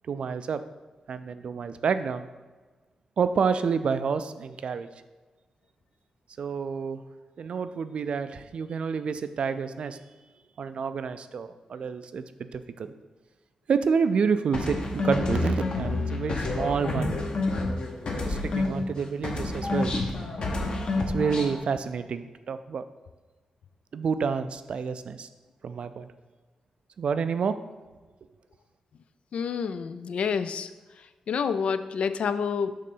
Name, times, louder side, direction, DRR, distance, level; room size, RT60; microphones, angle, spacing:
voice 1, 0.1-0.6 1.1-2.3 3.2-4.9 6.4-7.0 7.4-10.0 10.6-12.9 13.7-17.2 18.3-19.9 21.0-22.8 23.9-25.3 25.6-26.1 27.0-27.6, right 6 dB, 60° right, 11 dB, 0.3 m, -29 dB
sound 1, 14.5-19.0 19.2-21.6, left 2 dB, 50° left, 1.0 m, -28 dB
voice 2, 29.3-30.7 31.3-32.7, left 6 dB, 65° left, 12 dB, 0.3 m, -28 dB
6.6 x 3.2 x 5.4 m, 1.3 s
wide cardioid pair, 135°, 2 cm